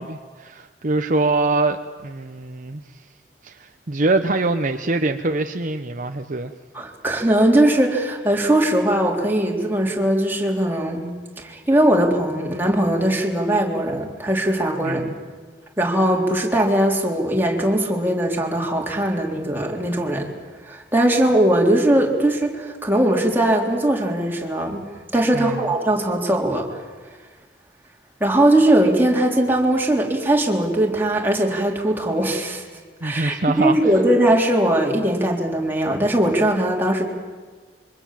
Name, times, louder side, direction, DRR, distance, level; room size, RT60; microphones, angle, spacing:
voice 1, 0.0-2.8 3.4-6.5 14.8-15.2 25.3-25.7 33.0-33.9, right 2 dB, 50° right, 6 dB, 0.9 m, -24 dB
voice 2, 6.7-11.1 11.4-15.0 15.8-20.3 20.7-24.8 25.1-26.8 28.2-32.6 33.0-37.0, right 1 dB, 10° right, -1 dB, 3.6 m, -20 dB
26.5 x 24.0 x 7.5 m, 1.5 s
head